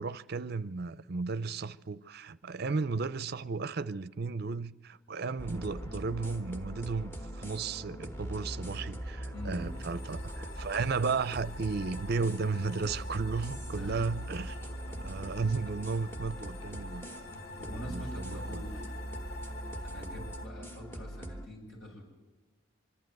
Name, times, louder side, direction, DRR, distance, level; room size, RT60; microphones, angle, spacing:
voice 1, 0.0-14.6 15.0-17.2 17.9-18.6 20.1-20.2, right 4 dB, 50° right, 0.5 m, -34 dB
sound 1, 5.4-21.5, equal, 10° left, 1.3 m, -41 dB
voice 2, 9.3-9.8 13.8-14.2 17.6-18.9 19.8-22.0, equal, 80° left, 7.7 m, -44 dB
sound 2, 9.3-20.5, left 2 dB, 60° left, 1.3 m, -47 dB
25.0 x 12.0 x 9.3 m
head